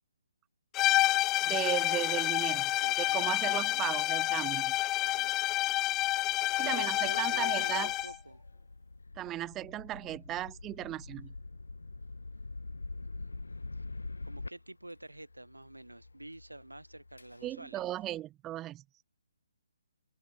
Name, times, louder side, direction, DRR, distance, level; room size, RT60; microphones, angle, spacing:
sound 1, 0.7-8.2, left 17 dB, 20° left, 0.3 m, -29 dB
voice 1, 1.4-2.7 3.1-4.8 6.6-7.9 9.2-11.3 17.4-18.8, right 14 dB, 15° right, 1.1 m, -36 dB
sound 2, 1.6-18.2, left 3 dB, 75° left, 5.4 m, -47 dB
voice 2, 2.8-3.9 5.0-5.4 6.2-8.4 13.0-13.3 14.2-17.8, right 1 dB, 85° right, 2.2 m, -47 dB
open air
figure-of-eight pair, 140°, 0 cm